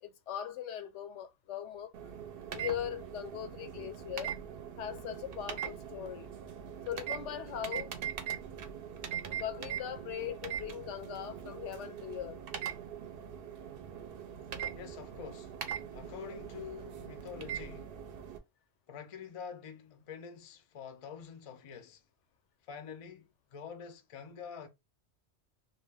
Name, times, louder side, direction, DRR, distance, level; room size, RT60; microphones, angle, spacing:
voice 1, 0.0-1.9 2.5-4.4 4.8-6.3 6.9-7.9 9.3-12.4, left 10 dB, 90° left, 0.9 m, -40 dB
sound 1, 1.9-18.4, right 9 dB, 65° right, 0.7 m, -41 dB
voice 2, 14.7-15.5 15.9-18.0 18.9-22.0 22.7-24.7, left 7 dB, 55° left, 0.4 m, -46 dB
2.4 x 2.2 x 3.3 m
omnidirectional pair, 1.2 m